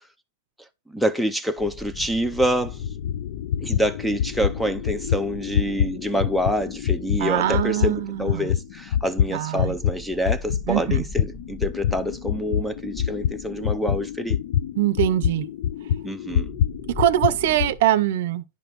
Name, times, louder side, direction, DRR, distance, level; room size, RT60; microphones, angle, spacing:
voice 1, 0.9-2.8 3.6-14.4 16.0-16.5, equal, ahead, 0.5 m, -26 dB
sound 1, 1.6-15.7 16.0-16.1 16.3-17.8, left 1 dB, 30° left, 1.2 m, -43 dB
sound 2, 1.9-10.0 10.2-17.7, left 9 dB, 55° left, 0.5 m, -26 dB
voice 2, 7.2-8.5 9.3-9.7 10.7-11.0 14.8-15.5 17.0-18.4, right 12 dB, 60° right, 0.6 m, -22 dB
9.8 x 5.2 x 3.0 m
supercardioid pair, 160°, 0 cm